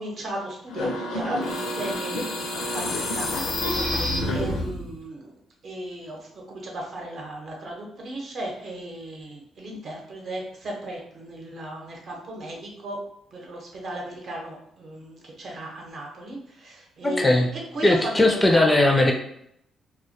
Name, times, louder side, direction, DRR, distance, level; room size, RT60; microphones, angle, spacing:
voice 1, 0.0-5.3 5.6-13.0 13.3-17.4 17.7-18.7, right 1 dB, 55° right, -1 dB, 0.8 m, -36 dB
sound 1, 0.7-4.9, left 1 dB, 85° left, 0.5 m, -28 dB
voice 2, 17.0-17.5 17.8-19.1, left 1 dB, 15° left, 2 dB, 0.4 m, -19 dB
2.2 x 2.1 x 2.7 m, 0.72 s
cardioid pair, 90°, 0 cm